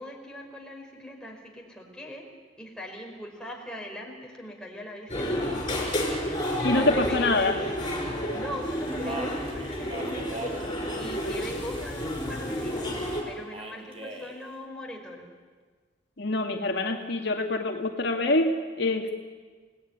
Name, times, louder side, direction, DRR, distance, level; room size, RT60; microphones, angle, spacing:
voice 1, 0.0-2.3 2.6-5.8 6.2-7.7 8.3-10.5 11.0-12.9 13.2-15.3, equal, 5° left, 0 dB, 4.7 m, -41 dB
sound 1, 5.1-13.2, equal, 25° left, 6.4 m, -30 dB
voice 2, 6.6-7.6 16.2-19.3, left 2 dB, 60° left, 2 dB, 2.1 m, -25 dB
Speech, 8.6-12.8 13.5-14.4, right 2 dB, 30° right, 3.7 m, -41 dB
29.0 x 18.5 x 9.7 m, 1.5 s
head